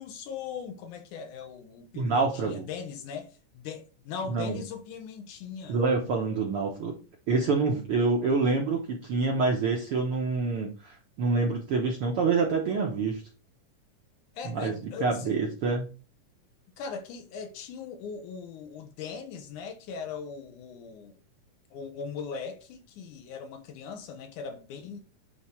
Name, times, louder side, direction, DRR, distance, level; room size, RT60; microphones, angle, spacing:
voice 1, 0.0-5.8 14.4-15.3 16.8-21.1 21.7-25.0, left 6 dB, 75° left, 2.3 m, -39 dB
voice 2, 2.0-2.7 4.3-4.6 5.7-6.9 7.3-13.2 14.4-15.9, right 4 dB, 65° right, 1.4 m, -27 dB
9.6 x 3.7 x 4.4 m
omnidirectional pair, 3.8 m